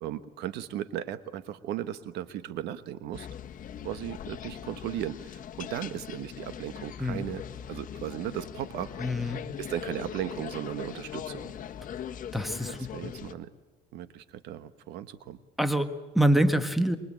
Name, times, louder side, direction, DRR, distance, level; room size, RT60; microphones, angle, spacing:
voice 1, 0.0-3.3 3.8-7.4 7.7-9.3 9.6-11.5 12.7-13.5 13.9-15.4, right 11 dB, 85° right, 12 dB, 1.3 m, -36 dB
sound 1, 3.1-13.3, left 9 dB, 50° left, 1.5 m, -41 dB
voice 2, 9.0-9.4 12.3-13.1 15.6-17.0, equal, ahead, 9 dB, 1.6 m, -26 dB
24.0 x 22.5 x 8.9 m, 1.2 s
cardioid pair, 110°, 17 cm